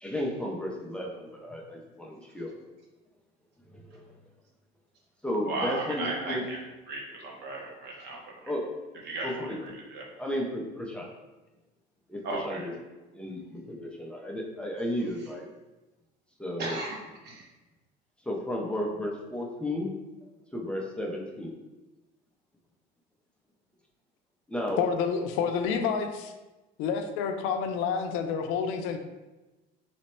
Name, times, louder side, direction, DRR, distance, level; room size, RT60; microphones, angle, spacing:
voice 1, 0.0-2.5 3.7-4.0 5.2-6.4 8.5-8.7 9.2-9.6 10.2-11.1 12.1-12.7 13.1-15.5 16.4-16.8 18.3-19.9 20.5-21.5 24.5-24.8, left 1 dB, 5° left, -2 dB, 0.4 m, -33 dB
voice 2, 5.4-6.6 6.9-8.5 9.0-10.1 12.2-12.7 15.2-15.3 16.6-17.0 17.2-17.5, right 2 dB, 55° right, -2 dB, 0.9 m, -36 dB
voice 3, 24.8-26.3 26.8-29.0, left 6 dB, 80° left, 6 dB, 0.5 m, -29 dB
3.1 x 2.1 x 4.2 m, 1.1 s
cardioid pair, 140°, 21 cm